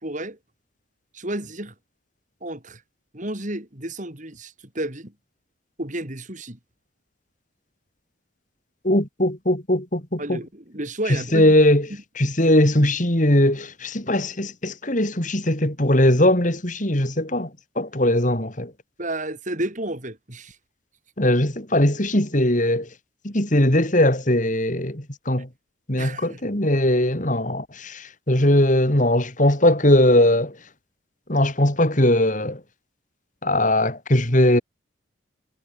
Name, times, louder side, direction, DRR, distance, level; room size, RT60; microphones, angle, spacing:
voice 1, 0.0-0.4 1.1-1.7 2.4-2.8 3.1-5.1 5.8-6.6 10.2-11.5 12.4-12.6 19.0-20.6 26.0-26.4, right 1 dB, 40° right, 3.8 m, -31 dB
voice 2, 8.8-10.4 11.3-11.9 12.2-17.5 17.8-18.7 21.2-22.9 23.2-25.5 25.9-30.5 31.3-32.6 33.4-34.6, left 1 dB, 40° left, 3.7 m, -20 dB
head